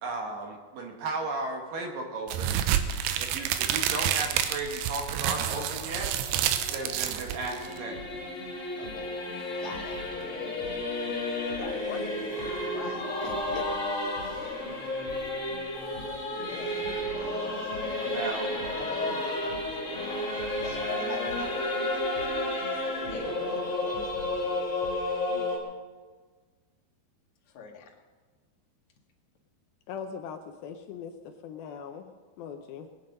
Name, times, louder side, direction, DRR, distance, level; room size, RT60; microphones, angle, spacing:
voice 1, 0.0-2.8 3.2-6.1 6.7-8.1 18.0-18.5, right 2 dB, 60° right, 2 dB, 2.9 m, -35 dB
sound 1, 2.3-7.8, right 10 dB, 80° right, 2.8 m, -29 dB
Singing / Musical instrument, 6.2-25.6, left 1 dB, 25° left, 1.8 m, -32 dB
voice 2, 6.7-7.1 8.8-9.1 9.4-10.0 10.4-10.7 11.6-14.1 15.3-15.6 16.0-18.3 18.7-21.6 21.9-24.0 24.2-24.3 27.5-28.0, left 5 dB, 55° left, 1 dB, 2.6 m, -45 dB
sound 2, 7.9-25.6, equal, 35° right, 4.7 m, -48 dB
voice 3, 29.9-31.1 31.4-32.1 32.4-32.9, left 7 dB, 75° left, 5 dB, 2.3 m, -40 dB
21.5 x 9.8 x 5.4 m, 1.4 s
omnidirectional pair, 4.8 m